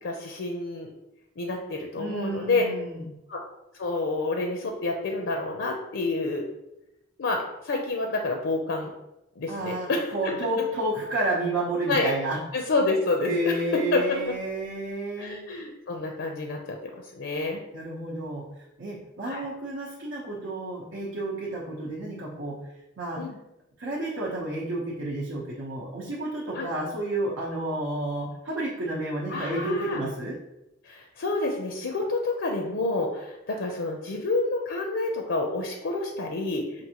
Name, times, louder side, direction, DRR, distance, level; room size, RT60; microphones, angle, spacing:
voice 1, 0.0-0.9 1.4-2.7 3.3-3.4 3.8-6.5 7.2-8.9 9.4-10.3 11.9-12.1 12.5-14.2 15.2-17.6 19.2-19.5 23.2-23.4 26.5-26.7 29.3-30.0 30.8-36.8, left 2 dB, 75° left, 2 dB, 0.5 m, -28 dB
voice 2, 2.0-3.1 9.5-12.4 13.2-15.5 17.7-18.5 18.8-22.6 23.0-23.2 23.8-30.4, right 1 dB, 85° right, -6 dB, 0.8 m, -31 dB
5.2 x 2.5 x 2.9 m, 0.91 s
head